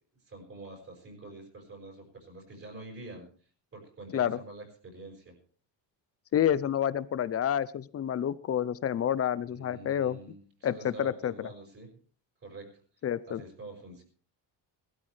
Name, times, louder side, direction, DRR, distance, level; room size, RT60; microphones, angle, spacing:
voice 1, 0.2-3.3 3.7-5.4 9.5-11.9 12.4-12.8 13.3-14.0, right 2 dB, 30° right, 1 dB, 5.4 m, -46 dB
voice 2, 6.3-10.2 10.6-11.3 13.0-13.4, left 10 dB, 35° left, 18 dB, 0.5 m, -29 dB
19.5 x 13.0 x 3.3 m, 0.43 s
cardioid pair, 155°, 42 cm